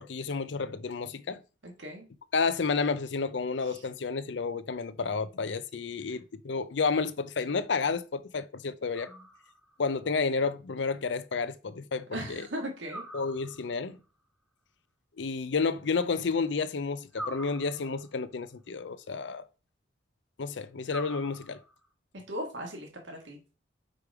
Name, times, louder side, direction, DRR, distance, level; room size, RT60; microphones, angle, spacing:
voice 1, 0.0-1.4 2.3-9.1 9.8-12.5 13.1-14.0 15.2-19.4 20.4-21.6, left 4 dB, 75° left, 0.6 m, -31 dB
voice 2, 1.6-2.0 3.6-3.8 9.0-9.2 12.1-13.0 22.3-23.4, equal, 85° right, 1.7 m, -38 dB
sound 1, 8.9-9.8 12.9-13.9 17.1-18.2 20.9-21.9, right 1 dB, ahead, 1.3 m, -44 dB
5.1 x 5.1 x 4.7 m
head